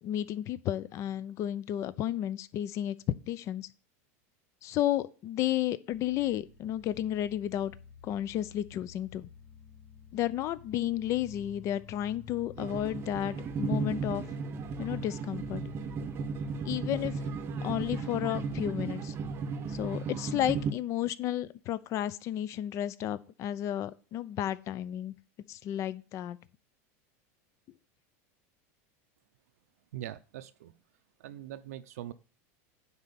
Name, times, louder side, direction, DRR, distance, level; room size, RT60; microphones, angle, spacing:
voice 1, 0.0-3.0 3.3-3.7 4.6-7.7 8.0-9.3 10.1-14.2 14.8-15.6 16.6-17.1 17.6-19.1 19.7-25.1 25.5-26.4, left 12 dB, 40° left, 0.6 m, -32 dB
sound 1, 5.9-19.0, left 4 dB, 15° left, 2.8 m, -52 dB
sound 2, 12.6-20.7, right 4 dB, 30° right, 0.8 m, -35 dB
voice 2, 29.9-30.7 31.2-32.1, right 12 dB, 90° right, 0.6 m, -42 dB
9.6 x 4.3 x 7.0 m
supercardioid pair, 145°, 8 cm